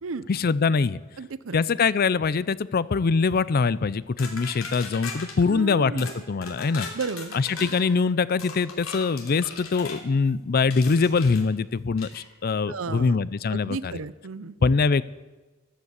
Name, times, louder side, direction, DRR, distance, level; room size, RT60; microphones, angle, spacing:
voice 1, 0.3-1.0 1.5-6.9 7.3-13.9 14.6-15.0, left 4 dB, 50° left, 18 dB, 0.5 m, -23 dB
voice 2, 1.2-1.6 5.4-6.1 6.9-7.7 12.7-13.2 13.5-14.7, right 4 dB, 75° right, 17 dB, 0.6 m, -34 dB
sound 1, 4.2-5.4 6.0-6.2 6.4-7.8 8.4-10.0 10.7-11.4 12.0-12.2, left 4 dB, 85° left, 3.0 m, -38 dB
14.0 x 11.0 x 8.1 m, 1.2 s
head